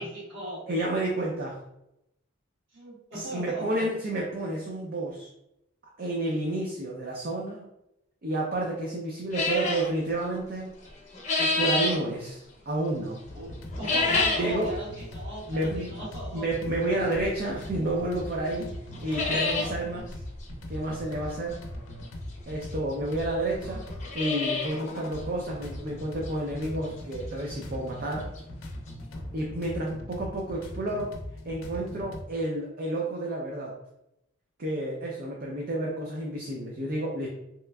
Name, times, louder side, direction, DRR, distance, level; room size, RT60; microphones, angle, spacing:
voice 1, 0.0-0.7 2.7-3.9 13.3-16.5 19.3-19.9, right 1 dB, 60° right, -7 dB, 1.4 m, -38 dB
voice 2, 0.7-1.6 3.1-5.3 6.0-7.6 8.2-10.8 11.4-13.2 14.4-14.7 15.5-15.9 16.3-18.7 19.0-20.1 20.7-21.6 22.5-23.8 24.1-28.3 29.3-31.1 31.4-33.8 34.6-37.3, right 1 dB, 45° right, -2 dB, 0.5 m, -30 dB
sound 1, 9.3-9.9 10.8-12.0 13.7-14.5 14.9-15.0 15.8-15.9 17.6-17.7 18.2-18.3 18.5-18.6 18.9-19.7 20.1-20.2 20.4-20.5 22.0-22.1 22.9-23.0 23.2-23.3 23.8-24.8 25.1-25.2 25.7-25.8 26.3-26.4 28.1-28.2 28.3-28.4 28.9-29.0, left 3 dB, 35° left, 0.6 m, -27 dB
sound 2, 13.2-32.2, left 1 dB, 85° left, 0.6 m, -40 dB
3.2 x 2.9 x 2.3 m, 0.84 s
head